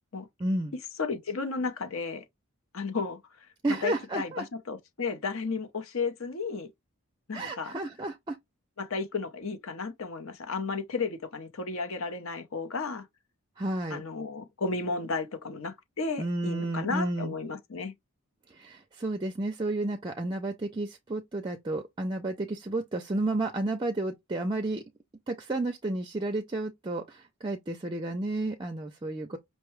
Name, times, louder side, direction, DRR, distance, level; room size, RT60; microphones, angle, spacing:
voice 1, 0.4-0.7 3.6-4.5 7.3-8.4 13.6-14.0 16.2-17.3 18.5-24.8 25.3-29.4, right 2 dB, 20° right, 0.4 m, -31 dB
voice 2, 1.0-2.2 2.7-3.2 3.8-6.7 7.3-7.7 8.8-13.1 13.9-17.9, left 4 dB, 65° left, 0.8 m, -33 dB
5.4 x 2.2 x 3.1 m
head